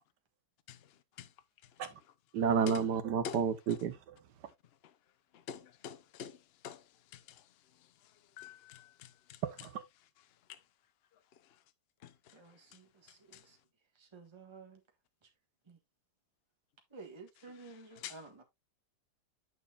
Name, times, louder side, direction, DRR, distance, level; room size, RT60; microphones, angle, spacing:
voice 1, 2.3-4.0 9.4-9.8, right 7 dB, 70° right, 1.6 m, -31 dB
voice 2, 5.5-6.3 6.6-6.8 8.4-8.8 18.0-18.1, left 8 dB, 55° left, 0.6 m, -43 dB
voice 3, 12.3-13.6 13.9-14.8 15.2-15.3 15.7-15.8 16.9-18.4, right 4 dB, 15° right, 1.3 m, -53 dB
9.1 x 6.4 x 2.4 m
omnidirectional pair, 1.9 m